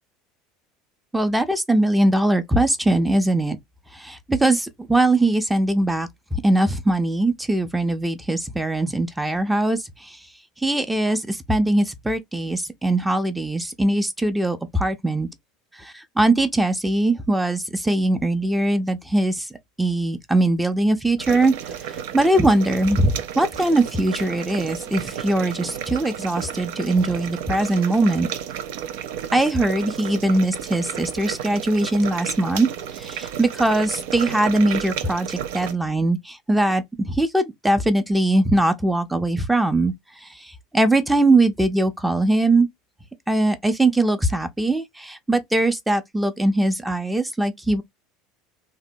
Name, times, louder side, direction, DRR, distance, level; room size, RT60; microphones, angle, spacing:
voice 1, 1.1-3.6 3.9-10.2 10.6-15.3 15.8-19.5 19.8-28.3 29.3-32.7 32.9-39.9 40.2-42.7 43.3-47.8, right 2 dB, 10° right, 0.5 m, -21 dB
sound 1, 21.2-35.7, right 9 dB, 65° right, 0.3 m, -32 dB
2.8 x 2.1 x 2.6 m
figure-of-eight pair, 70°, 0 cm